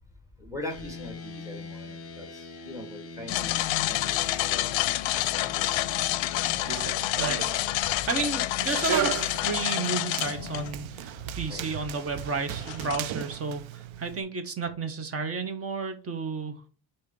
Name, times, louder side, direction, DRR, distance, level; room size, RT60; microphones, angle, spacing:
voice 1, 0.4-4.7 5.4-6.2 8.0-8.1 11.5-11.7, left 1 dB, 5° right, 3 dB, 1.8 m, -42 dB
sound 1, 0.7-6.6, left 4 dB, 30° left, 1.0 m, -43 dB
sound 2, 3.3-10.7 11.3-11.4 12.6-13.0, left 16 dB, 75° left, 0.5 m, -28 dB
Run, 6.5-14.2, right 12 dB, 80° right, 0.6 m, -36 dB
voice 2, 7.8-16.6, right 4 dB, 30° right, 8 dB, 1.1 m, -32 dB
6.3 x 2.9 x 5.2 m, 0.35 s
cardioid pair, 150°, 46 cm